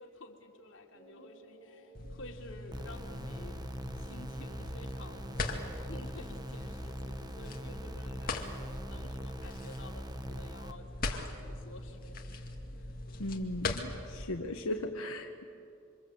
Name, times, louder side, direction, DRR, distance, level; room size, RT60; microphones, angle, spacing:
voice 1, 0.0-3.6 3.9-12.2 12.8-12.9, left 2 dB, 60° left, 0 dB, 3.2 m, -51 dB
sound 1, 0.9-14.4, right 2 dB, 70° right, 7.6 m, -60 dB
sound 2, 1.9-14.2, left 2 dB, 40° left, 2.2 m, -41 dB
sound 3, 2.7-10.7, equal, 20° right, 1.1 m, -42 dB
voice 2, 13.2-15.4, left 1 dB, 90° left, 2 dB, 1.3 m, -37 dB
28.0 x 25.5 x 8.0 m, 2.6 s
head